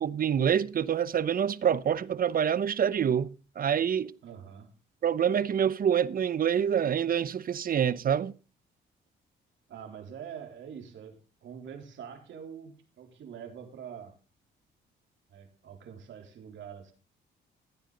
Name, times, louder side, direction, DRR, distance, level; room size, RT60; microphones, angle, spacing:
voice 1, 0.0-4.1 5.0-8.3, right 8 dB, 45° right, 0.8 m, -26 dB
voice 2, 4.2-4.8 9.7-14.2 15.3-16.9, right 8 dB, 70° right, 3.4 m, -45 dB
15.5 x 9.5 x 3.9 m
cardioid pair, 90°, 20 cm